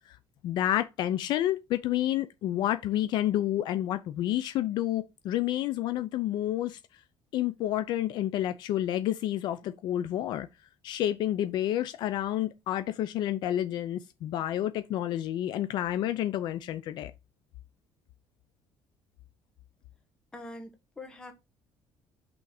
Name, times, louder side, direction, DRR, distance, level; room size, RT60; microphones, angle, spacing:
voice 1, 0.4-6.8 7.3-10.5 10.8-17.1, left 12 dB, 60° left, 0.5 m, -29 dB
voice 2, 20.3-21.3, left 2 dB, 10° left, 1.4 m, -44 dB
5.7 x 3.9 x 4.9 m
cardioid pair, 175°, 9 cm